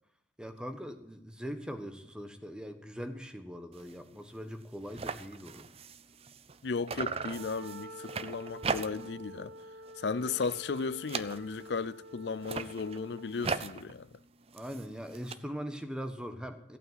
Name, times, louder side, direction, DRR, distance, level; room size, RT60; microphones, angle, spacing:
voice 1, 0.4-5.6 14.5-16.8, equal, 5° right, 1.2 m, -41 dB
sound 1, 3.7-4.0 4.3-4.4 4.6-6.6 6.9-9.2 9.6-9.9 10.2-11.8 12.3-15.3, right 5 dB, 35° right, 0.5 m, -39 dB
voice 2, 6.6-9.5 10.0-14.1, left 4 dB, 65° left, 0.5 m, -35 dB
Wind instrument woodwind instrument, 7.1-13.4, equal, 90° right, 0.8 m, -48 dB
15.0 x 8.8 x 9.4 m
head